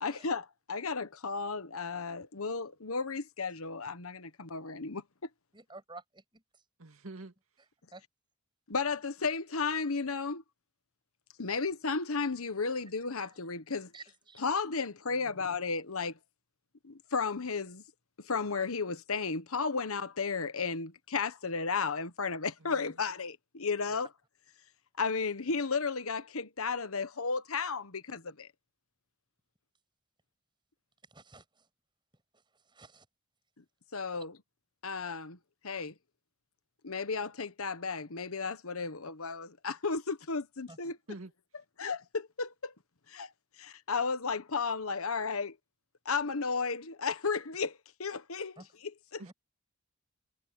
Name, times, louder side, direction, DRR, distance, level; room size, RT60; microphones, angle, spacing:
voice 1, 0.0-5.0 8.7-10.4 11.4-13.9 14.4-16.2 16.8-17.8 18.2-24.1 25.0-28.5 33.9-34.4 34.8-35.4 35.6-35.9 36.8-41.0 41.8-42.7 43.1-43.3 43.6-45.6 46.0-48.6 48.8-49.2, left 4 dB, 85° left, 1.3 m, -34 dB
voice 2, 5.5-6.4 7.9-8.0 13.2-13.3 13.9-14.4 31.1-31.7 32.7-33.1 40.7-40.8 48.6-48.7 49.3-49.4, right 3 dB, 20° right, 7.3 m, -51 dB
voice 3, 6.8-7.3 15.1-15.4 22.6-23.0 40.8-41.3 49.2-49.3, right 2 dB, 80° right, 2.2 m, -48 dB
head